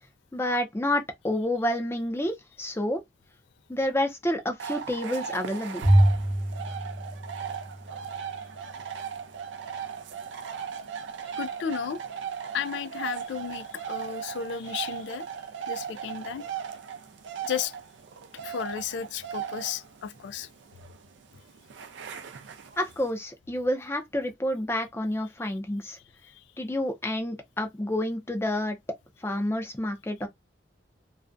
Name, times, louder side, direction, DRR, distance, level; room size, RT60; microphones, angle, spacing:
voice 1, 0.3-3.0 3.7-5.8 22.8-26.0 26.6-28.8 29.2-30.3, left 1 dB, 15° left, 0.5 m, -29 dB
sound 1, 4.6-23.1, right 7 dB, 85° right, 0.4 m, -38 dB
Bowed string instrument, 5.8-8.2, right 1 dB, 40° right, 0.7 m, -24 dB
voice 2, 11.4-12.0 12.5-15.3 15.7-16.4 17.4-17.7 18.4-20.5, left 8 dB, 80° left, 0.3 m, -33 dB
2.4 x 2.1 x 2.4 m
head